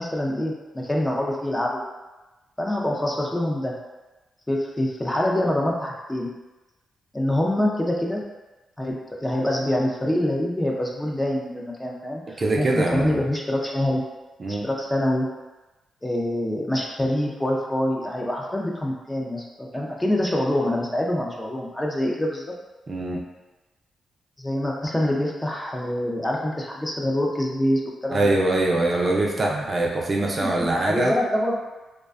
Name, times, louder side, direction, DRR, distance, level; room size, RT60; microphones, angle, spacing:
voice 1, 0.0-1.8 2.6-3.8 4.5-6.3 7.1-8.2 8.8-14.0 14.5-15.3 16.0-22.5 24.4-28.3 30.1-30.5 30.9-31.6, left 1 dB, 15° left, -2 dB, 0.4 m, -25 dB
voice 2, 12.4-13.2 14.4-14.7 22.9-23.2 28.1-31.1, right 2 dB, 45° right, -1 dB, 0.4 m, -23 dB
2.4 x 2.2 x 2.4 m, 1.1 s
cardioid pair, 65°, 0 cm